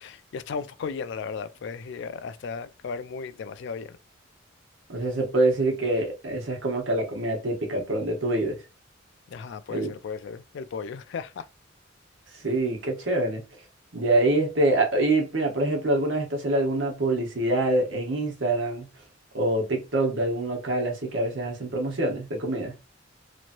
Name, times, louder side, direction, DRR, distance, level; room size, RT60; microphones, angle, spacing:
voice 1, 0.0-4.0 9.3-11.5, left 5 dB, 65° left, 0.3 m, -35 dB
voice 2, 4.9-8.6 9.7-9.9 12.3-13.4 13.9-18.9 19.3-22.7, right 2 dB, 70° right, 1.1 m, -25 dB
3.1 x 2.8 x 2.5 m
head